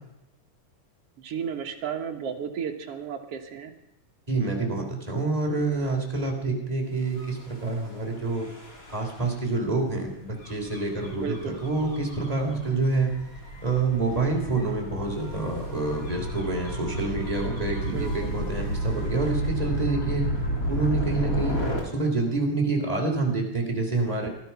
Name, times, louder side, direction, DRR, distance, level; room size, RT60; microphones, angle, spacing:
voice 1, 1.2-3.7 11.2-11.6 17.9-18.3, right 7 dB, 55° right, 4 dB, 1.9 m, -33 dB
voice 2, 4.3-8.5 8.9-13.1 13.6-20.2 20.7-21.6 21.8-24.3, right 3 dB, 10° right, 0 dB, 2.9 m, -27 dB
Gull seagull / Waves surf / Siren, 7.1-21.8, right 1 dB, 25° left, 3.0 m, -32 dB
18.0 x 12.5 x 5.8 m, 0.90 s
omnidirectional pair, 4.0 m